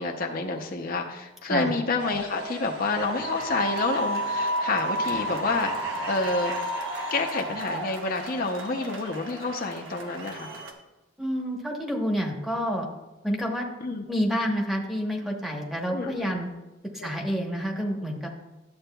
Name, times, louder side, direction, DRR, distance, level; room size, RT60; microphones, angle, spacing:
voice 1, 0.0-6.5 7.1-10.5 13.8-14.0 15.9-16.4 17.0-17.1, left 3 dB, 50° left, 2 dB, 0.6 m, -29 dB
sound 1, 2.0-10.7, right 1 dB, 75° right, 1.1 m, -32 dB
sound 2, 2.9-7.6, equal, 60° right, 2.2 m, -40 dB
voice 2, 11.2-12.9 13.2-13.7 14.1-16.5 16.9-18.3, equal, ahead, -1 dB, 0.9 m, -28 dB
12.0 x 7.8 x 2.2 m, 1.1 s
head